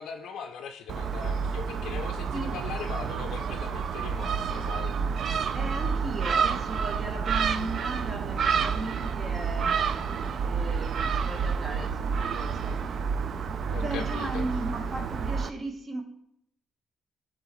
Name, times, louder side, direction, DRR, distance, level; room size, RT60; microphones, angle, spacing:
voice 1, 0.0-4.9 13.7-14.5, left 6 dB, 80° left, 0.4 m, -39 dB
Gull seagull, 0.9-15.5, right 6 dB, 60° right, 0.3 m, -29 dB
voice 2, 5.5-10.1 10.4-12.8 13.1-16.0, right 2 dB, 40° right, 1.1 m, -37 dB
11.5 x 3.9 x 3.0 m
cardioid pair, 90°, 0 cm